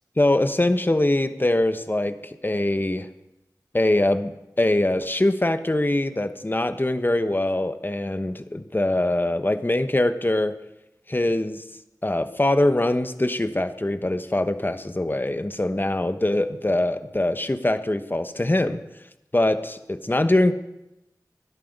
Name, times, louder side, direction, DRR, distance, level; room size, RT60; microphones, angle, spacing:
voice 1, 0.2-3.1 3.7-10.5 11.1-11.6 12.0-18.8 19.3-20.5, left 1 dB, 30° left, 10 dB, 1.1 m, -23 dB
20.5 x 11.5 x 5.3 m, 0.93 s
wide cardioid pair, 40°, 7 cm